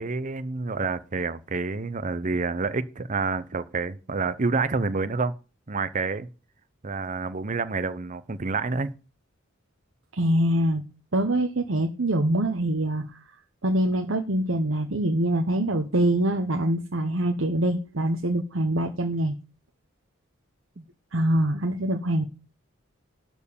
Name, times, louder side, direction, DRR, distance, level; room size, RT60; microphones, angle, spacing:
voice 1, 0.0-5.3 5.7-6.3 6.8-8.9 20.8-20.9, right 4 dB, 40° right, 0.7 m, -28 dB
voice 2, 10.1-10.8 11.1-13.0 13.6-19.3 21.1-22.2, right 1 dB, 70° right, 1.1 m, -24 dB
12.5 x 4.6 x 8.5 m
head